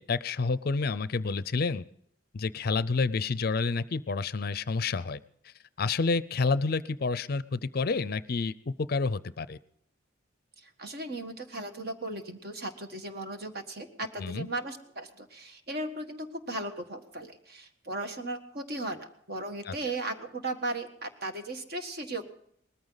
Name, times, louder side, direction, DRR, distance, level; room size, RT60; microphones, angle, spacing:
voice 1, 0.0-1.8 2.3-9.6 14.2-14.5 19.7-19.8, left 4 dB, 50° left, 17 dB, 0.5 m, -29 dB
voice 2, 10.6-22.2, right 2 dB, 50° right, 6 dB, 1.6 m, -37 dB
20.0 x 14.0 x 4.0 m, 0.68 s
head